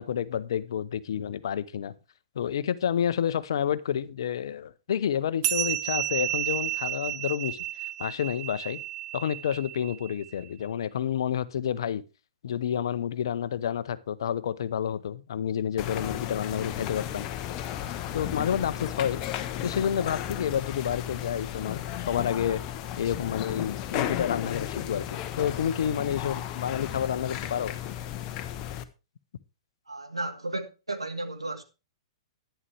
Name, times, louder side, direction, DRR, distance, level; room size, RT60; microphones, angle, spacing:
voice 1, 0.0-1.9 2.4-7.6 8.0-8.8 9.1-12.0 12.4-17.3 18.1-19.2 19.6-22.6 23.0-27.8, left 9 dB, 60° left, 0.7 m, -29 dB
sound 1, 5.4-10.3, right 14 dB, 40° right, 0.9 m, -32 dB
sound 2, 15.8-28.8, left 11 dB, 35° left, 0.9 m, -34 dB
voice 2, 29.9-31.6, right 2 dB, 85° right, 1.5 m, -34 dB
11.0 x 10.0 x 3.3 m
figure-of-eight pair, 110°, 3 cm